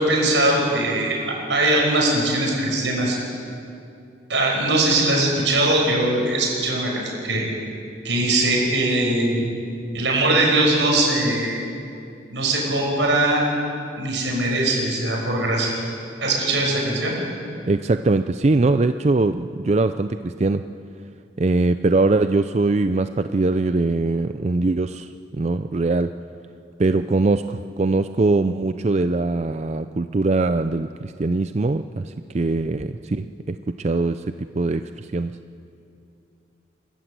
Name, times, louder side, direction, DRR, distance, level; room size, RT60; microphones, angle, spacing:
voice 1, 0.0-3.2 4.3-7.5 8.0-9.4 9.9-11.6 12.3-13.4 14.0-15.8 16.2-17.2, right 2 dB, 80° right, -1 dB, 6.3 m, -21 dB
voice 2, 17.7-20.7 21.4-25.1 25.3-26.1 26.8-35.4, right 3 dB, 35° right, 10 dB, 0.4 m, -22 dB
29.0 x 14.0 x 8.1 m, 2.5 s
head